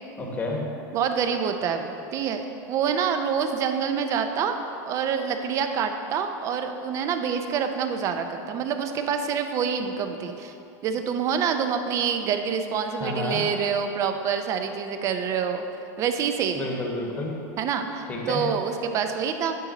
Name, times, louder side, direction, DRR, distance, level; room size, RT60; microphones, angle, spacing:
voice 1, 0.2-0.6 13.0-13.4 16.5-17.3 18.1-18.4, left 2 dB, 15° left, -1 dB, 1.1 m, -30 dB
voice 2, 0.9-2.4 2.7-4.6 4.9-10.5 10.8-15.6 16.0-16.7 17.6-19.6, right 7 dB, 35° right, 7 dB, 0.5 m, -26 dB
9.2 x 5.2 x 3.9 m, 2.8 s
supercardioid pair, 150°, 9 cm